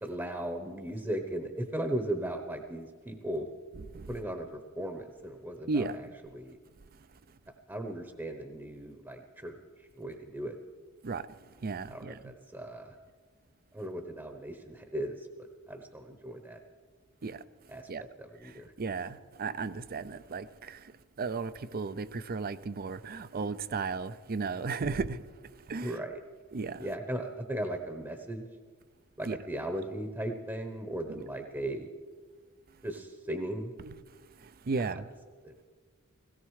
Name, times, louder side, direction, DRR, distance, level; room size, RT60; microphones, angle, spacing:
voice 1, 0.0-3.5 4.1-6.1 6.3-6.6 7.7-10.6 11.9-12.9 13.7-15.3 15.7-16.6 17.7-18.7 25.8-26.2 26.8-28.5 29.2-31.9 32.8-33.7 34.9-35.0 35.4-35.5, right 1 dB, 10° right, 0.9 m, -37 dB
voice 2, 5.7-6.0 11.0-11.2 11.6-12.2 17.2-17.4 17.9-18.0 18.8-20.5 21.2-25.2 25.7-26.0 26.5-26.9 29.3-29.4 31.1-31.2 33.8-34.0 34.7-35.1, right 4 dB, 45° right, 0.5 m, -34 dB
17.5 x 17.0 x 4.8 m
head